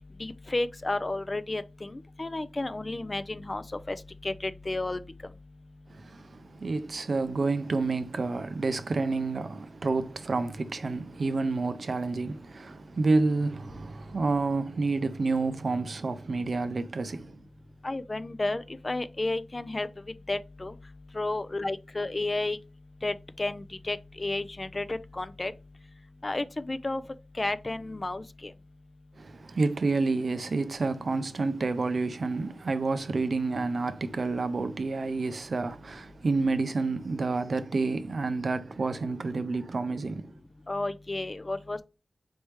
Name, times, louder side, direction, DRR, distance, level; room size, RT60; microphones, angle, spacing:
voice 1, 0.2-4.0 4.2-5.0 17.8-19.9 20.3-20.7 21.1-22.6 23.0-25.5 26.2-27.0 27.4-28.5 40.7-41.8, left 2 dB, 30° left, 0.4 m, -32 dB
voice 2, 5.9-17.4 29.2-40.3, right 3 dB, 60° right, 0.5 m, -29 dB
4.2 x 3.4 x 3.1 m
wide cardioid pair, 105°, 0 cm